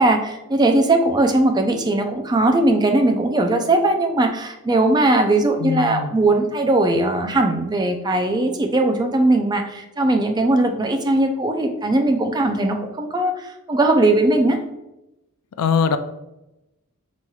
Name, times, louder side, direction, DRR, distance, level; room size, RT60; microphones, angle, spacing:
voice 1, 0.0-14.6, right 2 dB, 20° right, 4 dB, 0.3 m, -19 dB
voice 2, 5.6-6.2 15.6-16.0, left 6 dB, 90° left, 10 dB, 0.4 m, -21 dB
5.5 x 3.1 x 2.3 m, 0.93 s
head